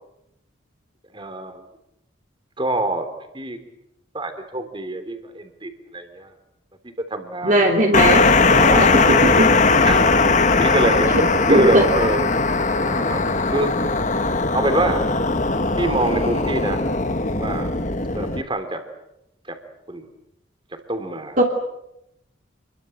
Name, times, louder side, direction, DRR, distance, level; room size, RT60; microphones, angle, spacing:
voice 1, 1.1-1.7 2.6-3.1 3.3-3.6 4.1-6.3 6.8-7.7 8.5-9.0 9.8-10.2 10.6-11.1 11.5-12.3 12.8-13.2 13.5-13.7 14.5-15.0 15.8-17.0 17.4-17.7 18.1-18.8 19.5-19.6 19.9-20.1 20.7-21.4, right 1 dB, 25° right, 8 dB, 3.1 m, -25 dB
voice 2, 7.4-8.3 8.8-9.9 11.1-11.2 11.5-11.8 21.4-21.5, right 1 dB, 40° right, 1 dB, 3.1 m, -18 dB
sound 1, 7.9-18.4, left 3 dB, 40° left, 1.3 m, -19 dB
28.0 x 22.5 x 7.9 m, 0.83 s
head